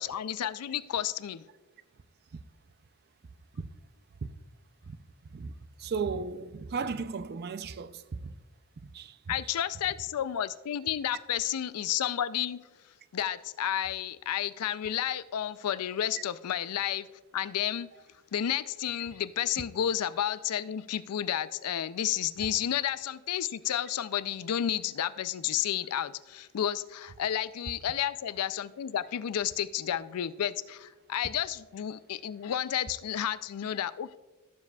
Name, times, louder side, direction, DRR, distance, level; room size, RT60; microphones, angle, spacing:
voice 1, 0.0-1.4 9.3-12.6 13.1-17.1 17.3-17.9 18.3-34.2, left 10 dB, 80° left, 0.4 m, -31 dB
voice 2, 5.2-5.5 5.8-8.4 8.8-9.3, right 5 dB, 45° right, 0.4 m, -36 dB
18.0 x 7.3 x 2.3 m
head